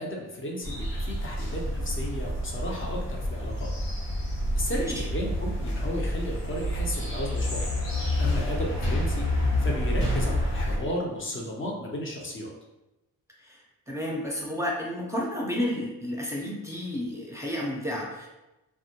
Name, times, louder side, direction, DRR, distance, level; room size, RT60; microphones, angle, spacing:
voice 1, 0.0-3.7 4.6-7.7 8.2-12.5, equal, 30° left, -1 dB, 0.7 m, -34 dB
sound 1, 0.6-10.8, left 1 dB, 60° left, 0.9 m, -28 dB
voice 2, 4.7-5.0 13.4-18.3, left 1 dB, 5° right, -3 dB, 0.6 m, -32 dB
2.1 x 2.0 x 2.8 m, 0.99 s
supercardioid pair, 50°, 39 cm